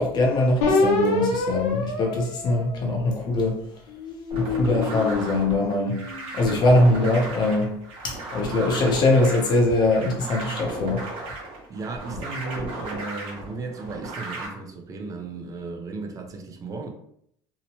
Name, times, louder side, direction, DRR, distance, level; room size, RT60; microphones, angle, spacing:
voice 1, 0.0-3.6 4.4-6.0 6.3-7.7 8.0-11.0, left 2 dB, 40° left, 0.8 m, -22 dB
sound 1, 0.6-3.3 3.9-6.4, left 3 dB, 75° left, 0.6 m, -27 dB
sound 2, 4.3-14.5, right 2 dB, 55° right, 0.9 m, -35 dB
voice 2, 11.7-16.9, right 3 dB, 30° right, 0.5 m, -35 dB
2.8 x 2.1 x 2.8 m
cardioid pair, 125°, 11 cm